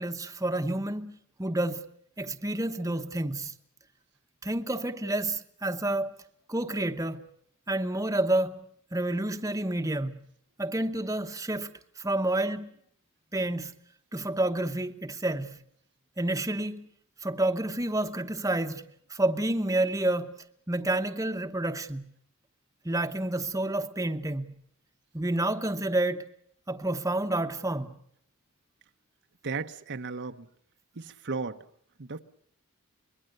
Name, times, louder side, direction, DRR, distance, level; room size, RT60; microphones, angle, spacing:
voice 1, 0.0-1.8 2.2-3.5 4.4-6.2 6.5-7.2 7.7-10.1 10.6-12.7 13.3-13.7 14.1-15.6 16.2-16.9 17.2-18.8 19.1-20.3 20.7-22.1 22.8-24.5 25.1-26.2 26.7-27.9, right 1 dB, 15° right, 1.1 m, -29 dB
voice 2, 29.4-30.5 31.0-31.6 32.0-32.2, right 4 dB, 55° right, 0.9 m, -35 dB
25.5 x 22.0 x 6.6 m
head